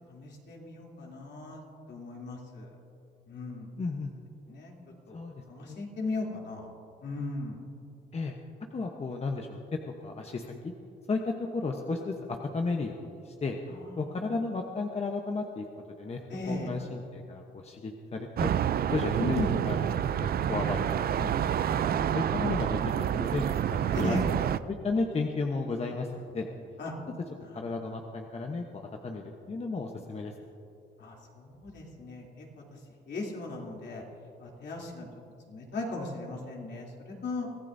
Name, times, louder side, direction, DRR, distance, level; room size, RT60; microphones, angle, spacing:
voice 1, 0.1-1.6 1.9-2.7 3.3-3.7 4.5-4.7 5.1-5.2 5.5-6.7 7.0-7.6 13.7-14.2 16.3-16.7 19.2-19.6 23.9-24.2 26.8-26.9 27.4-27.5 31.0-32.4 33.1-34.0 34.4-35.1 35.5-37.4, left 3 dB, 60° left, -2 dB, 3.2 m, -37 dB
voice 2, 3.8-4.1 5.1-5.8 8.1-8.4 8.7-9.6 10.0-10.7 11.1-13.6 14.0-15.7 16.0-16.2 16.5-18.5 18.9-20.8 21.2-26.5 27.5-30.3, left 3 dB, 30° left, 2 dB, 1.0 m, -34 dB
sound 1, 18.4-24.6, right 10 dB, 50° right, 0.5 m, -28 dB
24.0 x 14.5 x 2.7 m, 2.6 s
cardioid pair, 90°, 20 cm